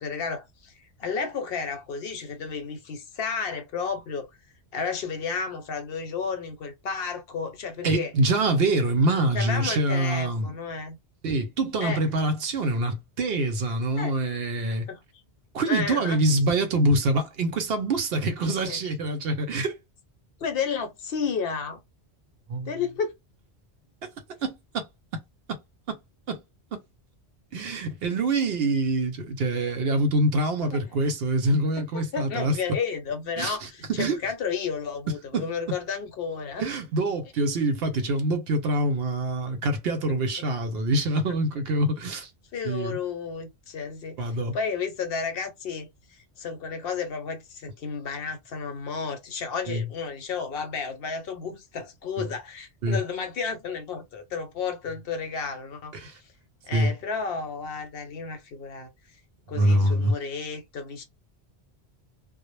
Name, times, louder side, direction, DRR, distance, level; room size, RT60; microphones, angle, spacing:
voice 1, 0.0-4.3 4.7-8.1 9.3-11.0 11.8-12.0 14.0-14.1 14.9-15.0 15.7-16.2 18.6-18.8 20.4-21.8 22.7-23.1 30.6-30.8 31.9-36.6 42.5-44.2 44.5-45.9 46.4-55.9 56.7-58.9 59.5-61.0, left 5 dB, 65° left, 0.8 m, -32 dB
voice 2, 7.8-10.5 11.2-14.9 15.5-19.8 22.5-22.7 24.4-24.9 25.1-25.2 25.5-25.6 25.9-26.0 26.3-26.4 26.7-26.8 27.5-32.6 33.4-34.2 35.3-35.5 36.6-42.3 42.6-43.0 44.2-44.6 49.7-49.9 52.2-52.3 52.8-53.0 55.9-56.1 56.7-56.9 59.5-60.1, right 2 dB, 70° right, 0.8 m, -25 dB
2.0 x 2.0 x 3.0 m
omnidirectional pair, 1.1 m